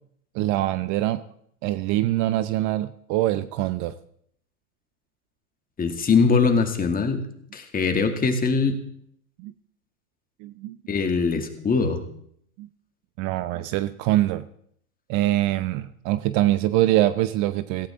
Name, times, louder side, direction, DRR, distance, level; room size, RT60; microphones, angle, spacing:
voice 1, 0.3-1.2 1.6-3.9 9.4-9.5 10.4-10.8 12.6-12.7 13.2-14.5 15.1-17.9, right 15 dB, 40° right, 14 dB, 0.7 m, -24 dB
voice 2, 5.8-7.2 7.5-8.8 10.9-12.0, left 4 dB, 20° left, 5 dB, 2.2 m, -22 dB
17.0 x 16.0 x 3.6 m, 0.66 s
hypercardioid pair, 105°, 44 cm